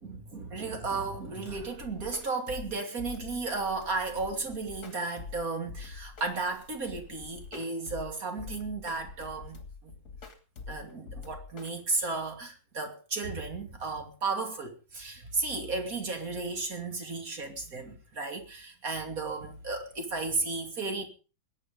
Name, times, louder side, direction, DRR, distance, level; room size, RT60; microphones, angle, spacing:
voice 1, 0.0-9.9 10.7-21.0, right 3 dB, 30° right, 2.9 m, -34 dB
sound 1, 1.5-12.1, left 5 dB, 30° left, 2.6 m, -45 dB
21.5 x 9.9 x 5.3 m
omnidirectional pair, 3.6 m